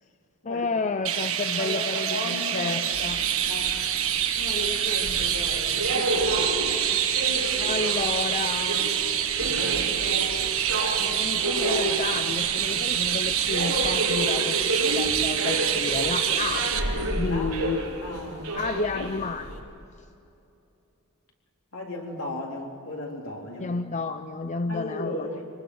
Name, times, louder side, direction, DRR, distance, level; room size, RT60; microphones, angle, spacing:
voice 1, 0.4-3.2 7.6-8.9 11.0-16.7 17.1-17.8 18.5-19.6 23.6-25.3, left 4 dB, 35° left, 9 dB, 0.6 m, -31 dB
Chirp tweet, 1.0-16.8, right 9 dB, 65° right, 1.4 m, -26 dB
voice 2, 1.6-2.7 3.5-3.8 4.4-6.4 6.9-7.1 7.3-7.7 9.5-10.0 17.2-17.6 18.0-18.5 21.7-23.8 24.7-25.4, left 2 dB, 70° left, -1 dB, 3.8 m, -35 dB
sound 1, 2.9-19.6, right 1 dB, 90° right, 5.1 m, -31 dB
25.5 x 19.5 x 6.4 m, 2.8 s
head